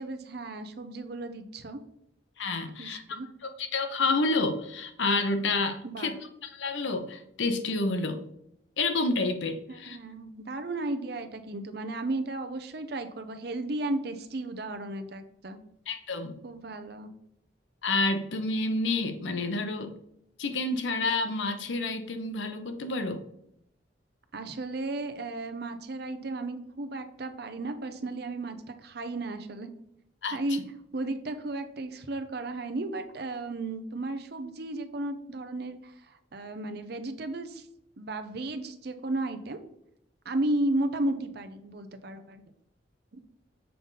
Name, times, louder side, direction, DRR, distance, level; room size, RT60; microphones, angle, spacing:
voice 1, 0.0-1.8 2.8-3.3 5.8-6.1 9.7-15.6 16.4-17.1 24.3-29.7 30.3-30.6 30.9-35.9 36.3-37.7 38.0-39.6 40.2-42.4, right 2 dB, 55° right, 8 dB, 0.7 m, -34 dB
voice 2, 2.4-3.0 3.4-6.1 6.4-8.2 8.8-10.0 15.9-16.4 17.8-19.9 20.4-23.2 30.2-30.4, left 3 dB, 80° left, 7 dB, 0.8 m, -29 dB
6.8 x 3.9 x 3.9 m, 0.77 s
head